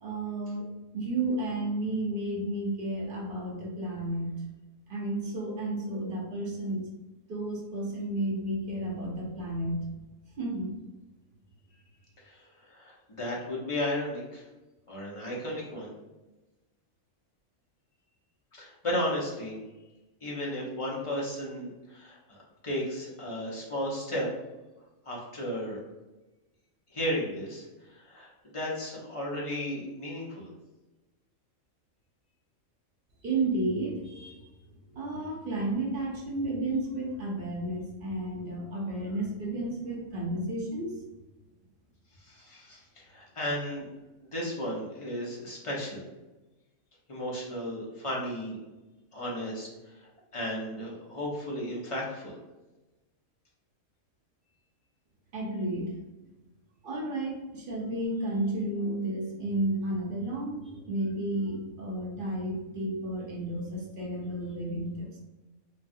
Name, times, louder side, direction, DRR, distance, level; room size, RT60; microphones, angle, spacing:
voice 1, 0.0-4.4 4.9-6.9 7.3-9.9 10.4-10.7 33.2-41.0 55.3-55.9 56.8-65.2, right 1 dB, 50° right, -2 dB, 0.7 m, -32 dB
voice 2, 12.7-14.4 14.9-15.9 18.6-19.6 20.2-22.4 22.6-24.3 25.1-25.8 26.9-27.6 27.9-30.5 42.2-43.9 44.3-46.0 47.1-48.6 49.1-49.7 50.3-52.4, left 1 dB, 35° left, -4 dB, 0.5 m, -34 dB
3.1 x 2.4 x 2.6 m, 1.1 s
omnidirectional pair, 1.4 m